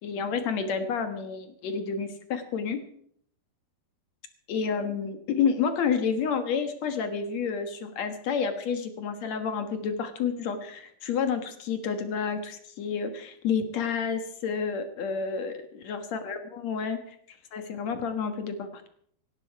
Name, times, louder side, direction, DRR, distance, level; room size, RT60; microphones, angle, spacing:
voice 1, 0.0-2.8 4.5-18.9, left 6 dB, 60° left, 8 dB, 1.9 m, -30 dB
18.0 x 15.5 x 4.7 m, 0.63 s
omnidirectional pair, 5.0 m